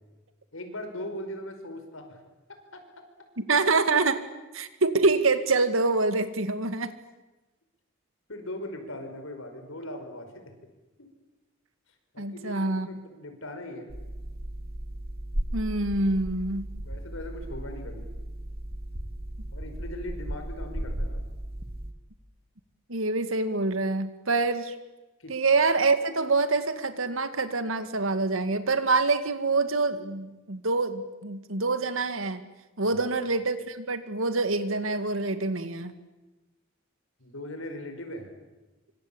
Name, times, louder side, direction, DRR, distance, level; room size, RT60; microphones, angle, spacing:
voice 1, 0.5-2.2 2.7-2.8 8.3-10.5 11.0-11.1 12.1-13.9 16.8-18.1 19.5-21.2 25.2-25.4 32.9-33.0 37.2-38.3, left 1 dB, 85° left, 6 dB, 5.4 m, -39 dB
voice 2, 3.4-4.2 4.5-7.0 12.2-12.9 15.5-16.7 22.9-24.7 25.3-32.4 32.8-35.9, right 3 dB, 85° right, 10 dB, 2.0 m, -26 dB
Heartbeat Stopping, 13.9-21.9, right 1 dB, 50° right, 2.3 m, -35 dB
25.5 x 25.0 x 8.7 m, 1.1 s
head